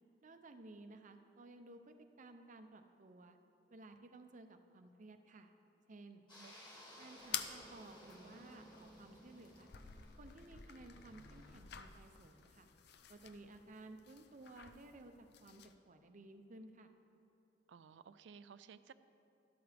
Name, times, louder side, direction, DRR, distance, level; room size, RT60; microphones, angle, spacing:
voice 1, 0.2-3.4 3.7-5.5 5.9-6.2 7.0-9.7 10.2-12.7 13.1-16.9, right 2 dB, 45° right, 7 dB, 0.6 m, -56 dB
sound 1, 6.3-11.5, equal, 25° left, 2.9 m, -58 dB
sound 2, 7.2-15.7, left 9 dB, 65° left, 0.5 m, -50 dB
voice 2, 17.7-18.9, right 6 dB, 85° right, 14 dB, 0.4 m, -57 dB
12.5 x 12.0 x 3.4 m, 2.8 s
head